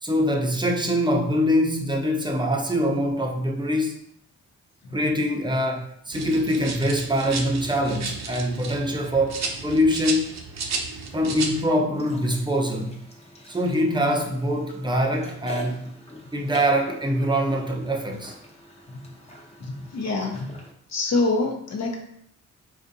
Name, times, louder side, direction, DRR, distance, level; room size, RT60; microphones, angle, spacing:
voice 1, 0.0-4.0 4.9-10.3 11.1-13.0 13.5-15.9 16.3-18.3, equal, 15° right, 0.6 m, -24 dB
sound 1, 6.1-11.6, right 4 dB, 55° right, 0.7 m, -33 dB
sound 2, 11.9-20.7, left 1 dB, 20° left, 0.8 m, -44 dB
voice 2, 19.6-20.6 20.9-22.0, left 3 dB, 55° left, 0.9 m, -26 dB
4.3 x 2.5 x 2.6 m
cardioid pair, 60°, 33 cm